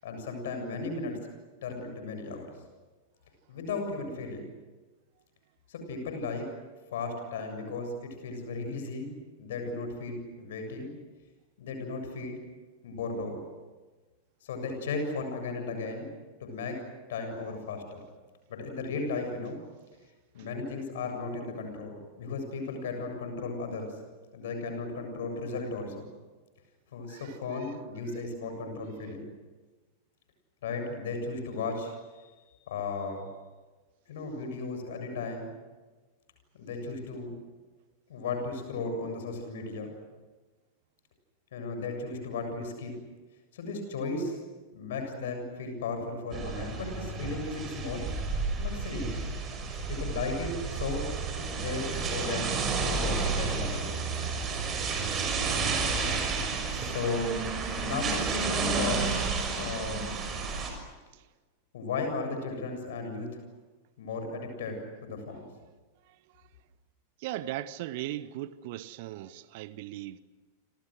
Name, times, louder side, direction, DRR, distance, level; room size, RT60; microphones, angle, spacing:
voice 1, 0.0-1.2 1.6-2.5 3.5-4.5 5.7-6.5 6.9-9.1 9.4-10.9 11.6-12.4 12.8-13.4 14.4-16.1 16.4-16.8 17.1-18.0 18.5-19.6 20.3-23.9 24.3-26.0 26.9-29.3 30.6-32.3 32.7-33.3 34.1-35.5 36.5-37.3 38.1-39.9 41.5-42.9 43.5-44.4 44.7-48.1 48.6-49.1 49.7-51.0 51.5-52.5 52.8-53.9 56.7-57.3 57.8-59.2 59.5-60.1 61.7-63.4 64.0-65.5, left 3 dB, 60° left, 7.4 m, -35 dB
sound 1, 46.3-60.7, right 4 dB, 25° right, 6.4 m, -31 dB
voice 2, 67.2-70.2, right 14 dB, 50° right, 1.0 m, -38 dB
30.0 x 27.0 x 6.5 m
figure-of-eight pair, 90°, 0 cm